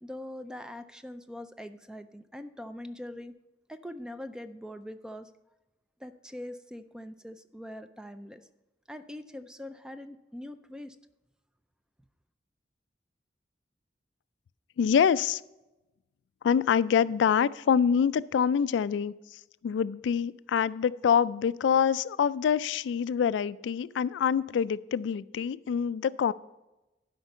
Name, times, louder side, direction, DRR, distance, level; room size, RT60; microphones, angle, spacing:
voice 1, 0.0-3.3 3.7-5.3 6.0-8.4 8.9-11.0, left 1 dB, 5° right, 10 dB, 0.4 m, -42 dB
voice 2, 14.8-15.4 16.4-26.3, left 7 dB, 85° left, 18 dB, 0.3 m, -26 dB
11.5 x 5.2 x 5.4 m, 1.0 s
head